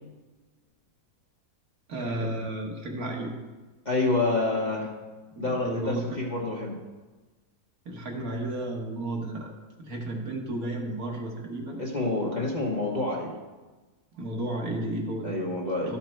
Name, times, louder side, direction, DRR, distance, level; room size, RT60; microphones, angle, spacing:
voice 1, 1.9-3.3 5.3-6.2 7.9-9.5 9.8-11.8 14.1-15.3 15.8-16.0, right 1 dB, 65° right, 0 dB, 1.8 m, -33 dB
voice 2, 3.8-4.9 5.4-6.8 11.8-13.4 15.2-16.0, left 2 dB, 30° left, -2 dB, 1.1 m, -28 dB
12.5 x 5.8 x 4.5 m, 1.2 s
omnidirectional pair, 1.7 m